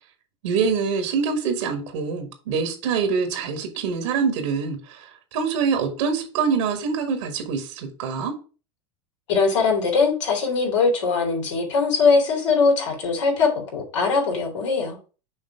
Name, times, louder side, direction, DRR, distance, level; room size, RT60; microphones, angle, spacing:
voice 1, 0.4-8.3, right 5 dB, 80° right, 1.6 m, -25 dB
voice 2, 9.3-15.0, left 4 dB, 80° left, 2.6 m, -21 dB
6.4 x 2.9 x 5.7 m
supercardioid pair, 110°, 15 cm